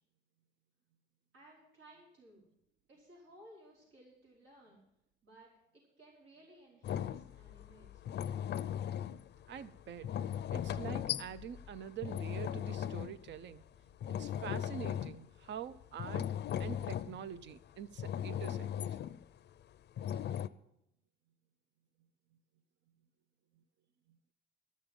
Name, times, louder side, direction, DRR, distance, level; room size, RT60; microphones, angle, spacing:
voice 1, 1.3-2.5 2.9-4.8 5.2-8.0, right 1 dB, 85° right, 4.9 m, -59 dB
sound 1, 6.8-13.6 13.9-15.4 15.8-17.6 18.0-19.2 20.0-20.5, left 10 dB, 60° left, 0.5 m, -38 dB
voice 2, 9.5-10.2 10.5-13.6 14.2-16.3 16.6-18.7 23.6-23.7 24.1-24.2, right 9 dB, 65° right, 0.7 m, -45 dB
13.0 x 6.5 x 8.9 m
cardioid pair, 90°, 20 cm